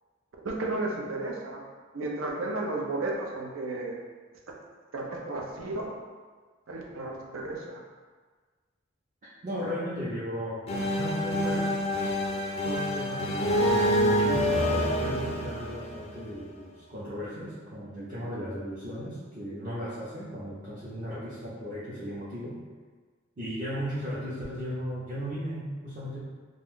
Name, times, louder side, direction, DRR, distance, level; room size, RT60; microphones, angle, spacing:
voice 1, 0.4-1.6 1.9-4.0 4.9-5.9 6.7-7.8, right 2 dB, 85° right, -1 dB, 0.5 m, -33 dB
voice 2, 9.4-11.8 12.6-22.6 23.4-26.3, equal, 40° right, -10 dB, 0.6 m, -36 dB
sound 1, 10.7-16.4, equal, 30° left, 0.3 m, -27 dB
2.5 x 2.2 x 3.6 m, 1.4 s
head